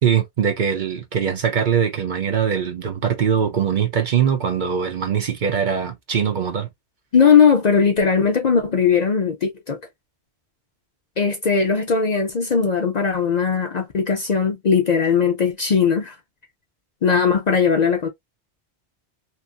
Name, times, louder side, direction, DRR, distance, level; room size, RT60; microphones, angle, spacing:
voice 1, 0.0-6.7, right 7 dB, 55° right, 0.7 m, -22 dB
voice 2, 7.1-9.8 11.2-16.2 17.0-18.1, left 6 dB, 50° left, 0.6 m, -18 dB
2.8 x 2.5 x 2.4 m
omnidirectional pair, 1.1 m